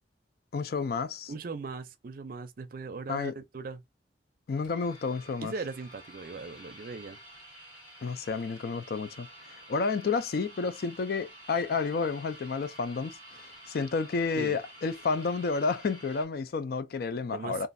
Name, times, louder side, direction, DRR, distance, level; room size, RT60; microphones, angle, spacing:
voice 1, 0.5-1.3 3.1-3.3 4.5-5.5 8.0-17.7, left 4 dB, 60° left, 0.4 m, -31 dB
voice 2, 1.3-3.8 5.4-7.2 14.4-14.6 17.3-17.7, right 4 dB, 55° right, 0.5 m, -39 dB
sound 1, 4.6-16.3, right 1 dB, 25° left, 1.9 m, -50 dB
3.1 x 2.5 x 2.5 m
head